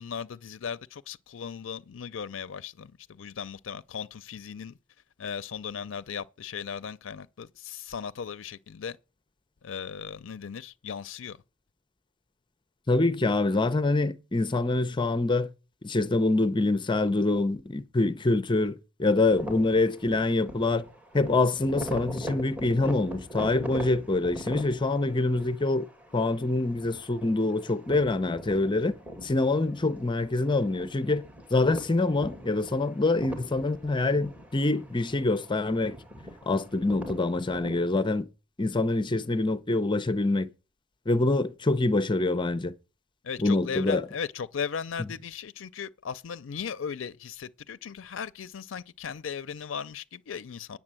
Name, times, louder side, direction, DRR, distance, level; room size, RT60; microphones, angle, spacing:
voice 1, 0.0-4.8 5.2-9.0 9.6-11.4 43.2-50.8, left 7 dB, 75° left, 0.5 m, -37 dB
voice 2, 12.9-15.5 15.8-20.8 21.1-25.9 26.1-29.0 29.2-31.2 31.5-35.9 36.5-38.2 38.6-40.5 41.1-42.7 43.4-44.0, left 2 dB, 25° left, 0.6 m, -25 dB
sound 1, 19.2-37.9, equal, 5° right, 2.4 m, -42 dB
9.7 x 7.3 x 7.5 m
head